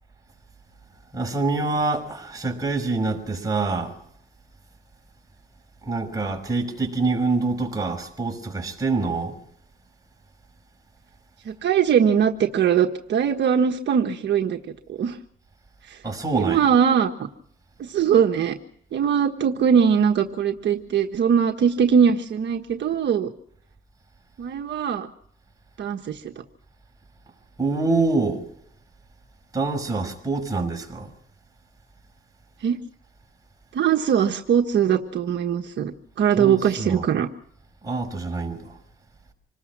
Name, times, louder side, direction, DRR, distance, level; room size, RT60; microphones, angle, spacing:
voice 1, 1.1-4.0 5.8-9.4 16.0-16.6 27.6-28.5 29.5-31.1 36.4-37.1 37.8-38.8, right 3 dB, 20° right, 5.9 m, -25 dB
voice 2, 11.4-14.6 14.9-15.2 15.9-16.0 16.4-17.1 17.8-18.6 18.9-23.3 24.4-25.1 25.8-26.2 32.6-32.8 33.7-37.3, right 7 dB, 65° right, 1.4 m, -21 dB
26.5 x 20.0 x 6.1 m
cardioid pair, 90°, 20 cm